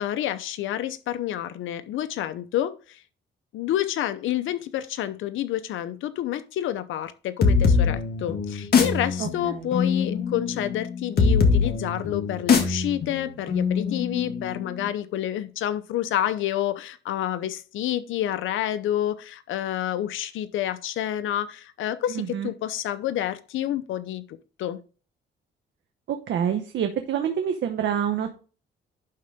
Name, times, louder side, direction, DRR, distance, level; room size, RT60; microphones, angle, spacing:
voice 1, 0.0-3.0 3.5-24.2 24.6-24.8, left 12 dB, 80° left, 0.8 m, -29 dB
sound 1, 7.4-14.8, left 5 dB, 50° left, 1.9 m, -23 dB
voice 2, 9.2-9.7 22.1-22.5 26.1-28.3, right 8 dB, 70° right, 1.0 m, -27 dB
11.0 x 3.9 x 3.5 m
cardioid pair, 90°, 20 cm